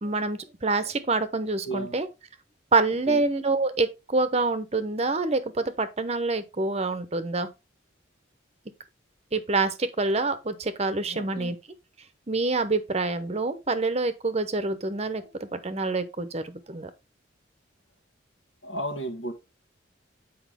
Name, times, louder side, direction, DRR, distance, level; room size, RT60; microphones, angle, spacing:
voice 1, 0.0-2.1 2.7-7.5 9.3-11.6 12.3-16.9, right 3 dB, 35° right, 0.8 m, -26 dB
voice 2, 11.1-11.6 18.6-19.3, right 1 dB, 75° left, 1.7 m, -34 dB
8.3 x 4.9 x 3.5 m
head